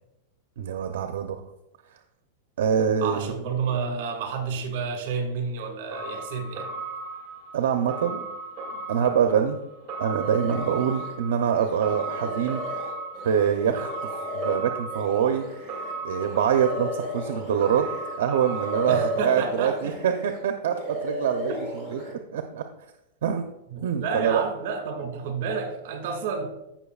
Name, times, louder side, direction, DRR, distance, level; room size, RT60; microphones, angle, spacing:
voice 1, 0.6-1.4 2.6-3.3 7.5-8.2 8.9-9.6 10.0-12.9 13.2-13.9 14.3-15.5 16.0-17.9 18.2-21.5 21.9-22.0 22.3-22.6 23.2-23.4 23.8-24.4, right 8 dB, 70° right, 6 dB, 0.6 m, -24 dB
voice 2, 3.0-6.7 18.9-19.9 21.5-21.6 23.7-26.5, right 5 dB, 45° right, 5 dB, 1.8 m, -30 dB
sound 1, 5.9-19.2, right 3 dB, 15° right, 2.4 m, -37 dB
sound 2, 10.2-11.2 11.6-18.2 18.4-20.4 20.7-22.1, equal, 15° left, 1.7 m, -35 dB
15.5 x 5.8 x 2.4 m, 0.90 s
supercardioid pair, 175°, 0 cm